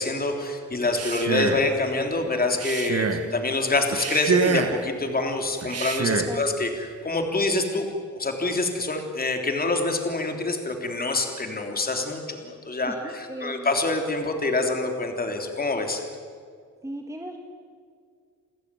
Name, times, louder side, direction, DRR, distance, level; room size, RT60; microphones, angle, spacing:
voice 1, 0.0-7.9 8.1-16.0, left 2 dB, 30° left, 4 dB, 3.2 m, -26 dB
Male speech man speaking, 0.8-1.7 2.5-3.3 3.9-4.9 5.6-6.4, right 5 dB, 50° right, 1.6 m, -26 dB
voice 2, 12.9-13.7 16.8-17.4, right 1 dB, 10° right, 3 dB, 1.7 m, -37 dB
28.5 x 15.0 x 9.7 m, 2.1 s
wide cardioid pair, 120°, 31 cm